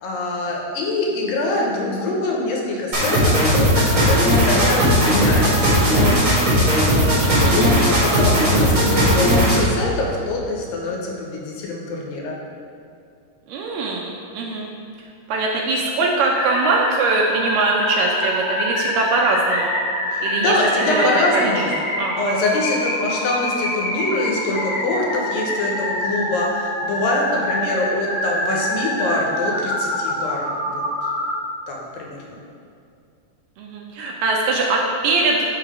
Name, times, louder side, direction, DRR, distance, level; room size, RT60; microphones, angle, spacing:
voice 1, 0.0-5.8 6.6-12.4 20.1-21.7 22.2-30.8 31.7-32.4, left 2 dB, 80° left, -1 dB, 2.5 m, -24 dB
sound 1, 2.9-9.7, equal, 45° right, 1.0 m, -17 dB
voice 2, 7.2-7.9 13.5-14.7 15.3-19.7 20.2-20.6 20.9-21.5 22.0-22.4 33.6-35.5, right 3 dB, 80° right, -1 dB, 2.1 m, -22 dB
sound 2, 16.3-31.3, left 1 dB, 55° left, 1.3 m, -25 dB
6.3 x 3.7 x 4.8 m, 2.4 s
omnidirectional pair, 4.0 m